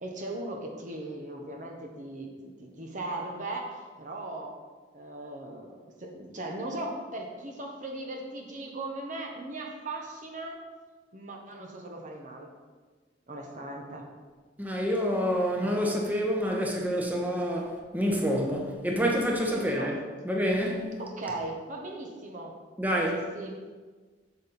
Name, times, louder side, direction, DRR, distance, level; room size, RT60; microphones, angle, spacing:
voice 1, 0.0-4.6 4.9-10.6 11.1-12.5 13.3-14.1 19.5-20.0 21.0-22.5 23.1-23.5, right 2 dB, 45° right, 1 dB, 1.1 m, -38 dB
voice 2, 14.6-19.9 20.2-20.9 22.8-23.2, equal, 10° right, 0 dB, 1.1 m, -27 dB
8.4 x 7.2 x 4.3 m, 1.4 s
head